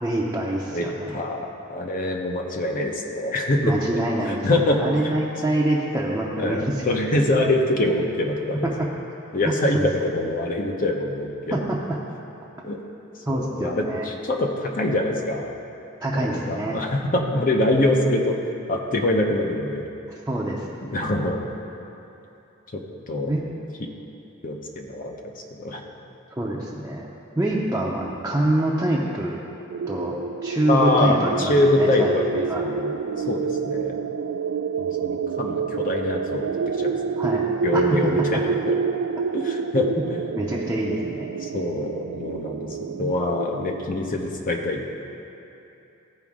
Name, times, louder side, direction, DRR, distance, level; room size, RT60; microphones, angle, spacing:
voice 1, 0.0-1.2 3.6-4.5 4.8-6.8 9.4-9.9 11.5-11.8 13.3-14.1 16.0-16.8 20.3-20.6 23.3-23.4 26.3-27.1 27.4-29.4 29.9-30.2 30.4-32.6 37.2-37.4 37.7-37.8 38.3-38.4 40.3-41.3 42.9-43.1, right 1 dB, 10° right, -5 dB, 0.7 m, -25 dB
voice 2, 0.7-3.8 4.3-5.0 5.5-5.6 6.4-8.7 9.3-11.6 12.6-12.8 13.3-15.5 16.1-18.3 18.7-19.9 20.8-21.4 23.1-23.3 24.4-25.1 25.5-25.8 30.7-32.9 33.3-33.9 34.8-36.5 36.8-37.2 37.6-38.8 39.3-39.9 41.4-44.9, left 1 dB, 40° left, 2 dB, 0.8 m, -24 dB
sound 1, 29.7-43.8, right 6 dB, 85° right, 0.3 m, -28 dB
14.5 x 5.0 x 3.6 m, 2.9 s
head